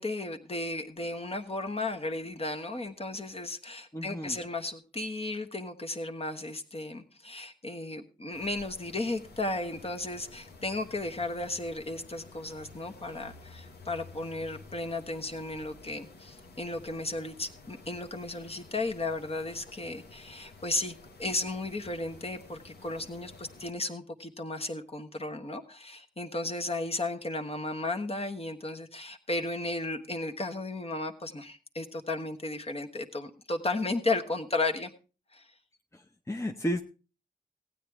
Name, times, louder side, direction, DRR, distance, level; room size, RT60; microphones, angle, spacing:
voice 1, 0.0-34.9 35.3-35.5, left 2 dB, 35° left, 4 dB, 1.3 m, -34 dB
voice 2, 3.9-4.4 35.9-36.8, equal, 15° left, 4 dB, 0.8 m, -33 dB
sound 1, 8.3-23.7, left 3 dB, 75° left, 1.2 m, -52 dB
15.5 x 8.8 x 3.5 m, 0.34 s
cardioid pair, 40°, 17 cm